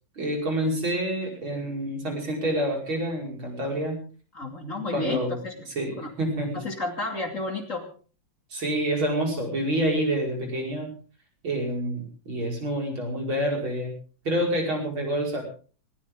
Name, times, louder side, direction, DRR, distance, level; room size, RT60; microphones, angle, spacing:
voice 1, 0.2-4.0 4.9-5.4 5.7-6.6 8.5-10.9 11.4-13.9 14.2-15.4, right 1 dB, 70° right, 1 dB, 6.3 m, -27 dB
voice 2, 4.3-5.2 5.4-5.5 6.0-6.1 6.5-7.9, left 2 dB, 35° left, 4 dB, 3.1 m, -31 dB
19.5 x 18.5 x 3.8 m, 0.39 s
omnidirectional pair, 2.3 m